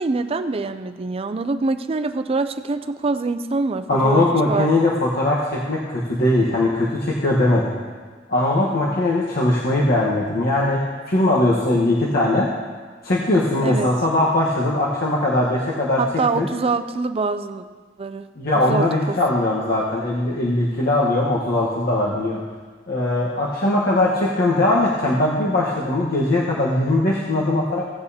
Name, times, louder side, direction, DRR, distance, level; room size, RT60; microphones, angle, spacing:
voice 1, 0.0-4.7 13.6-13.9 16.0-17.6 18.0-18.3 18.7-19.2, right 3 dB, 30° right, 10 dB, 0.4 m, -24 dB
voice 2, 3.9-7.7 8.3-12.5 13.0-16.0 16.3-16.5 18.3-22.4 22.9-27.8, left 1 dB, 55° left, -5 dB, 1.2 m, -20 dB
16.0 x 8.9 x 2.8 m, 1.5 s
head